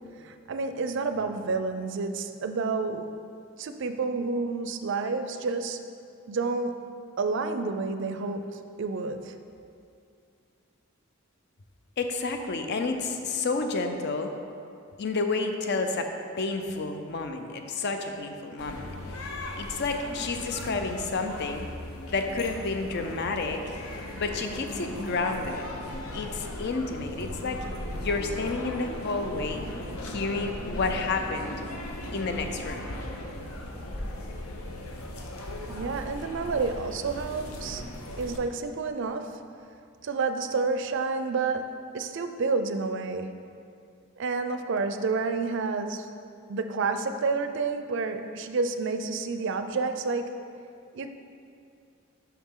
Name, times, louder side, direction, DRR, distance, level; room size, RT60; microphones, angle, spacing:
voice 1, 0.2-3.1 3.6-5.8 6.3-6.9 7.2-9.3 35.7-37.8 38.2-39.4 40.0-43.4 44.2-46.1 46.5-50.5 50.9-51.1, right 4 dB, 60° right, 8 dB, 0.4 m, -29 dB
voice 2, 12.0-14.3 15.0-16.1 16.4-19.3 19.6-21.7 22.1-23.6 24.2-25.6 26.1-27.6 28.0-29.6 30.0-31.5 32.1-32.9, left 3 dB, 50° left, 5 dB, 0.5 m, -30 dB
sound 1, 18.6-38.4, left 1 dB, 85° left, 0.7 m, -37 dB
7.1 x 5.8 x 3.7 m, 2.5 s
head